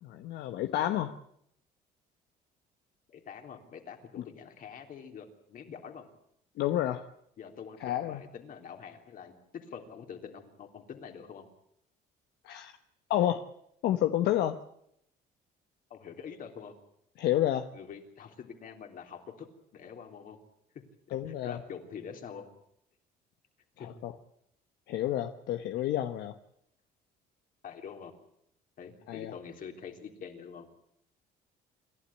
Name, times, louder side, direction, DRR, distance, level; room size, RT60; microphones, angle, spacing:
voice 1, 0.0-1.1 6.6-7.1 7.8-8.2 12.4-12.7 13.1-13.5 13.8-14.6 17.2-17.7 21.1-21.6 23.8-24.1 24.9-26.4 29.1-29.3, left 12 dB, 75° left, 8 dB, 1.1 m, -29 dB
voice 2, 3.1-6.1 7.4-11.5 15.9-16.7 17.7-19.5 19.7-20.4 21.3-22.5 23.8-23.9 27.6-28.1 28.8-30.7, left 7 dB, 55° left, 4 dB, 3.5 m, -45 dB
27.5 x 12.0 x 9.9 m, 0.74 s
cardioid pair, 110°, 17 cm